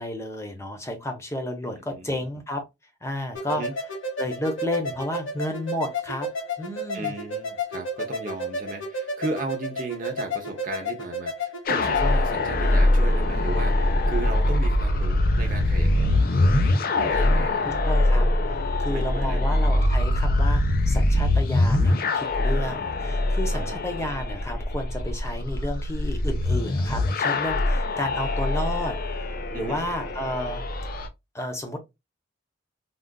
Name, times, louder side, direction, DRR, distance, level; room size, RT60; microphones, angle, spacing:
voice 1, 0.0-2.7 3.0-3.7 4.2-6.3 6.6-7.1 17.2-30.6 31.3-31.8, left 1 dB, 15° left, 0.7 m, -32 dB
voice 2, 1.9-2.3 3.5-3.7 6.9-16.1 17.0-17.6 18.9-19.6 23.5-23.8 29.5-29.8, right 3 dB, 45° right, 0.7 m, -35 dB
sound 1, 3.3-12.1, left 1 dB, 85° left, 1.1 m, -32 dB
sound 2, 11.7-31.1, left 1 dB, 50° left, 0.5 m, -23 dB
3.7 x 2.4 x 2.2 m
head